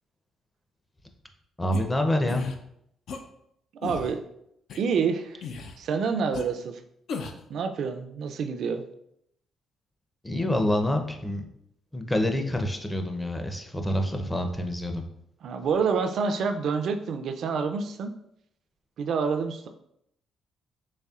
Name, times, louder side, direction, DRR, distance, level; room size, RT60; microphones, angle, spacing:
voice 1, 1.6-2.4 10.2-11.5 11.9-15.0, left 1 dB, 15° left, 4 dB, 0.5 m, -27 dB
sound 1, 1.7-1.8 2.3-2.6 3.1-3.2 3.8-4.1 4.7-4.8 5.4-5.8 6.3-6.4 7.1-7.4, left 5 dB, 70° left, 0.4 m, -36 dB
voice 2, 3.8-4.2 4.8-5.5 5.8-6.8 7.5-8.8 15.4-18.1 19.0-19.7, right 5 dB, 65° right, 6 dB, 0.4 m, -27 dB
4.1 x 3.2 x 2.3 m, 0.75 s
cardioid pair, 90°, 0 cm